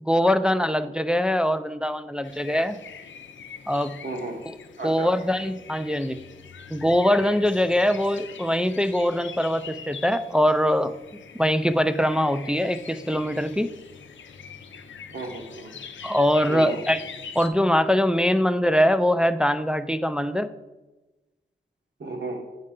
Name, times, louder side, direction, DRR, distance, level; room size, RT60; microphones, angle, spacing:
voice 1, 0.0-2.8 3.7-3.9 4.8-6.2 6.7-10.9 11.3-13.7 16.0-17.0 17.4-20.5, equal, 5° right, 9 dB, 0.3 m, -22 dB
sound 1, 2.2-17.5, left 6 dB, 90° left, 0.5 m, -43 dB
voice 2, 4.0-4.4 4.8-5.1 15.1-15.7 16.5-16.8 22.0-22.5, right 2 dB, 70° right, 3 dB, 1.2 m, -33 dB
8.5 x 5.4 x 3.7 m, 1.1 s
wide cardioid pair, 110°, 19 cm